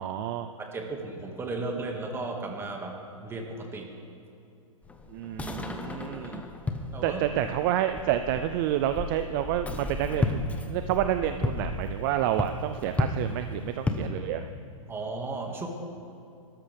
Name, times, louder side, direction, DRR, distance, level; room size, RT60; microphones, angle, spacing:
voice 1, 0.0-0.5 5.1-6.4 7.0-14.4, right 11 dB, 40° right, 10 dB, 0.5 m, -29 dB
voice 2, 0.6-3.9 6.2-6.4 6.9-7.2 14.9-15.7, right 3 dB, 15° right, 2 dB, 1.9 m, -35 dB
sound 1, 4.8-14.1, left 3 dB, 10° left, 1.0 m, -33 dB
23.0 x 13.5 x 3.5 m, 2.6 s
hypercardioid pair, 130°, 17 cm